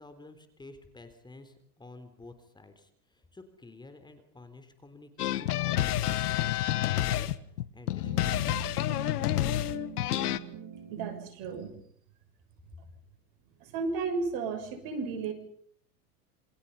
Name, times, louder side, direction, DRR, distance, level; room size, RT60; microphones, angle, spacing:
voice 1, 0.0-8.5, left 2 dB, 10° left, 8 dB, 3.8 m, -51 dB
sound 1, 5.2-10.4, left 13 dB, 80° left, 1.7 m, -29 dB
sound 2, 8.0-11.3, right 9 dB, 35° right, 4.2 m, -44 dB
voice 2, 10.9-11.7 13.6-15.3, right 4 dB, 50° right, 7 dB, 6.8 m, -33 dB
28.5 x 26.5 x 5.7 m, 0.63 s
hypercardioid pair, 120°, 45 cm